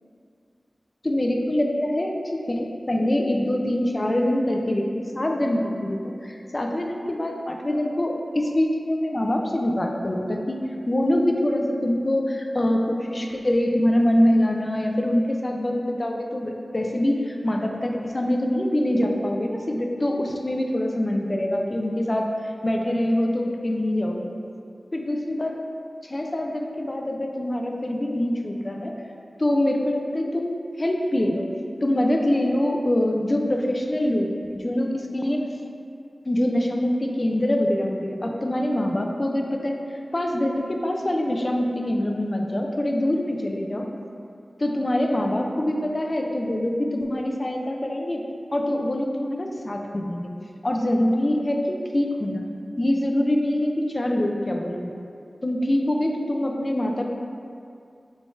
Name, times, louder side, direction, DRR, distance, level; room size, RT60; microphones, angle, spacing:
voice 1, 1.0-24.3 24.9-25.6 26.0-29.0 29.4-31.5 31.8-35.5 36.3-43.9 44.6-50.3 50.6-52.5 52.8-54.9 55.4-57.1, left 1 dB, 40° left, 2 dB, 0.4 m, -24 dB
3.8 x 3.6 x 2.4 m, 2.4 s
wide cardioid pair, 60°, 0 cm